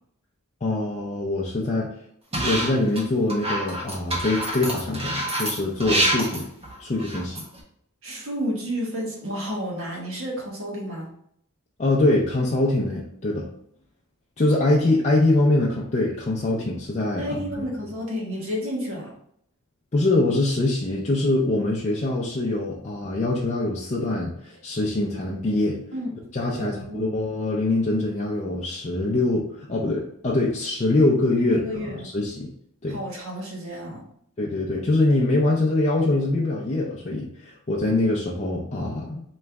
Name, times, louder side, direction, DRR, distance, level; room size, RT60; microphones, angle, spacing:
voice 1, 0.6-1.9 2.4-6.5 6.8-7.4 11.8-13.5 14.4-17.6 19.9-25.8 26.3-32.5 32.8-33.0 34.4-39.2, left 2 dB, 30° left, -4 dB, 0.5 m, -23 dB
sound 1, 2.3-3.0 3.3-7.6, right 1 dB, 25° right, 1.2 m, -26 dB
voice 2, 8.0-11.1 17.2-19.1 25.9-26.1 26.6-27.2 31.5-32.1 32.9-34.1, equal, 65° right, -2 dB, 1.4 m, -31 dB
3.4 x 3.1 x 3.5 m, 0.70 s
head